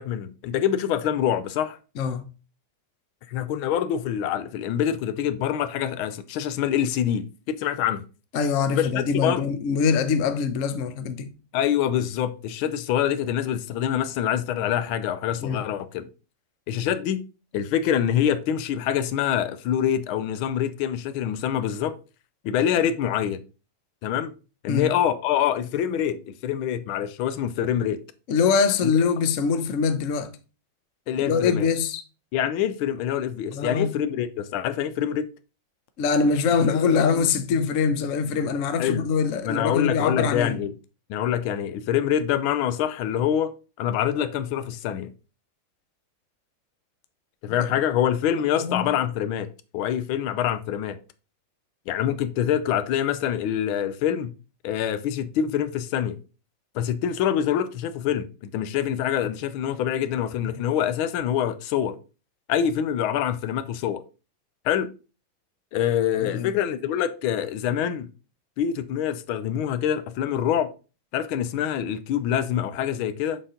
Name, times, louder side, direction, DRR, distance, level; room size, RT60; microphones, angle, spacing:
voice 1, 0.0-1.8 3.3-8.0 8.7-8.9 9.2-9.4 11.5-16.1 16.7-17.2 17.5-21.9 22.4-23.4 24.0-24.3 24.6-28.0 31.1-31.7 32.3-35.3 38.8-39.1 39.4-40.7 41.1-43.5 43.8-45.1 47.4-49.5 49.7-51.0 51.9-54.3 54.6-56.2 56.7-58.3 58.5-62.0 62.5-64.0 64.6-64.9 65.7-68.1 68.6-70.7 71.1-73.4, left 10 dB, 85° left, 1.5 m, -25 dB
voice 2, 8.3-11.3 15.4-15.6 24.7-24.9 28.3-30.3 31.2-32.0 33.5-33.9 36.0-40.6 47.5-47.6 48.6-48.9 66.2-66.5, left 5 dB, 65° left, 0.7 m, -23 dB
7.0 x 4.1 x 3.7 m
omnidirectional pair, 2.2 m